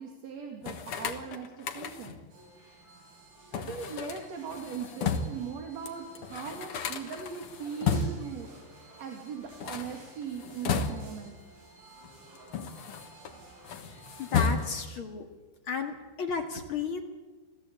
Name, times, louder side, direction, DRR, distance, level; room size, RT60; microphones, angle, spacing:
voice 1, 0.0-2.2 3.5-8.5 9.0-11.4, right 6 dB, 50° right, 3 dB, 2.6 m, -39 dB
sound 1, 0.6-2.3 3.5-5.5 5.9-6.0 6.1-8.4 9.5-11.3 12.0-13.3 13.6-15.0, left 5 dB, 80° left, 1.2 m, -33 dB
sound 2, 2.3-14.8, right 2 dB, 65° right, 8.1 m, -54 dB
voice 2, 13.8-15.3 15.7-17.0, left 5 dB, 45° left, 4 dB, 1.8 m, -34 dB
27.0 x 16.5 x 8.4 m, 1.3 s
omnidirectional pair, 4.7 m